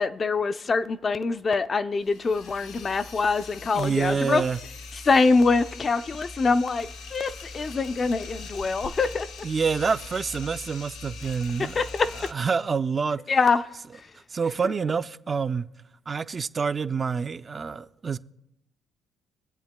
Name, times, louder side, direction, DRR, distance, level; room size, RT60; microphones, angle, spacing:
voice 1, 0.0-4.4 5.0-9.3 11.6-12.1 13.3-13.6 13.9-14.1, left 4 dB, 40° left, 0.4 m, -24 dB
sound 1, 1.9-12.3, left 4 dB, 80° left, 1.0 m, -41 dB
voice 2, 3.7-4.6 9.4-11.8 12.3-13.2 14.3-15.7 16.1-18.2, right 5 dB, 35° right, 0.4 m, -27 dB
23.5 x 7.9 x 2.2 m
supercardioid pair, 75°, 0 cm